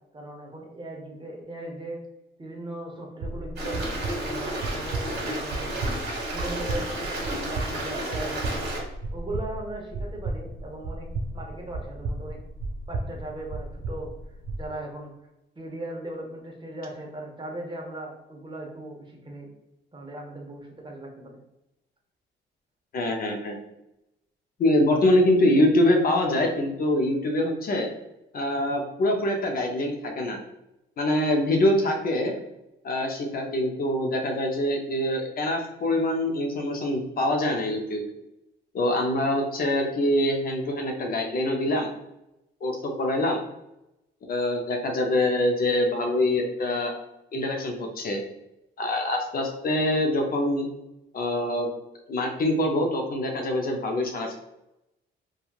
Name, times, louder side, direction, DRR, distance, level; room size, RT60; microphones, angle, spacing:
voice 1, 0.1-2.0 2.4-5.9 6.3-8.8 9.1-11.1 11.3-12.4 12.9-14.1 14.5-15.1 15.6-19.5 19.9-21.4, right 1 dB, 25° right, 0 dB, 0.7 m, -38 dB
sound 1, 3.2-14.7, right 2 dB, 80° right, 0.4 m, -34 dB
Stream, 3.6-8.8, right 1 dB, 55° right, 1.2 m, -32 dB
voice 2, 22.9-23.6 24.6-27.9 28.3-30.4 31.0-32.3 32.8-38.0 38.7-41.9 42.6-43.4 44.3-46.9 47.3-48.2 48.8-50.7 51.1-51.7 52.1-54.4, left 1 dB, 50° left, 3 dB, 0.5 m, -24 dB
3.0 x 2.3 x 2.3 m, 0.90 s
cardioid pair, 90°, 20 cm